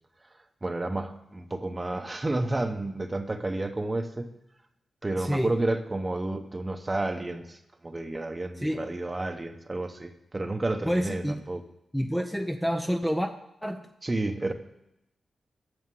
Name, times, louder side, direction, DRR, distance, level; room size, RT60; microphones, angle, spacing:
voice 1, 0.6-4.3 5.0-11.6 14.0-14.5, right 2 dB, 25° right, 8 dB, 1.0 m, -31 dB
voice 2, 5.2-5.5 8.6-8.8 10.8-11.4 11.9-13.3 13.6-13.8, equal, ahead, 5 dB, 0.7 m, -28 dB
11.0 x 7.4 x 7.5 m, 0.85 s
wide cardioid pair, 100°, 0 cm